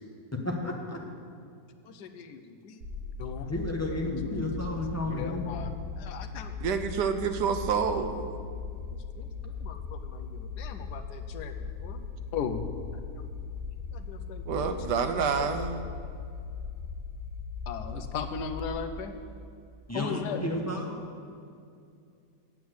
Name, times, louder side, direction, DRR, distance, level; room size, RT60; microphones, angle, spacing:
voice 1, 0.3-1.0 3.5-5.5 19.9-21.0, left 1 dB, 10° left, 0 dB, 0.9 m, -32 dB
voice 2, 1.9-2.8 3.2-3.5 5.1-6.5 9.2-9.3 9.6-12.0 12.3-12.7 13.1-13.2 13.9-15.1 17.7-19.2 19.9-20.4, left 6 dB, 80° left, 8 dB, 1.3 m, -38 dB
sound 1, 2.8-18.6, left 5 dB, 55° right, 1.6 m, -39 dB
voice 3, 6.6-8.3 14.5-15.9, right 6 dB, 90° right, 8 dB, 1.4 m, -28 dB
8.4 x 8.3 x 7.8 m, 2.4 s
omnidirectional pair, 1.8 m